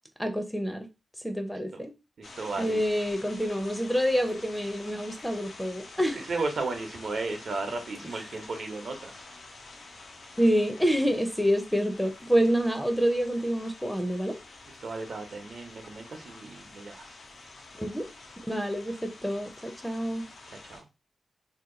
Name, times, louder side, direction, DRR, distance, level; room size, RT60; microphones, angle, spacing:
voice 1, 0.2-0.9 1.2-1.9 2.6-6.2 10.4-14.4 17.8-18.1 18.5-20.2, equal, ahead, 0.5 m, -27 dB
sound 1, 2.2-20.8, left 3 dB, 90° left, 0.8 m, -48 dB
voice 2, 2.2-2.8 6.1-9.2 14.8-17.1 20.7-20.8, right 3 dB, 70° right, 0.8 m, -34 dB
2.8 x 2.2 x 3.7 m
wide cardioid pair, 95°, 0 cm